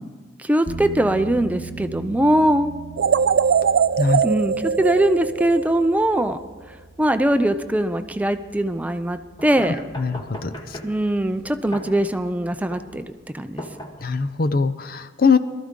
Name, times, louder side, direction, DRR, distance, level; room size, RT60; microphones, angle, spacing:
voice 1, 0.4-2.7 4.2-6.4 7.0-9.8 10.8-13.0 13.3-13.6, right 1 dB, 10° right, 9 dB, 0.5 m, -21 dB
sound 1, 0.7-13.0, right 4 dB, 50° right, 1.6 m, -41 dB
sound 2, 3.0-6.1, right 6 dB, 70° right, 0.3 m, -21 dB
sound 3, 9.4-14.4, left 1 dB, 25° left, 1.7 m, -39 dB
voice 2, 10.0-10.5 14.0-15.4, left 4 dB, 55° left, 11 dB, 0.6 m, -21 dB
21.5 x 13.5 x 3.7 m, 1.3 s
head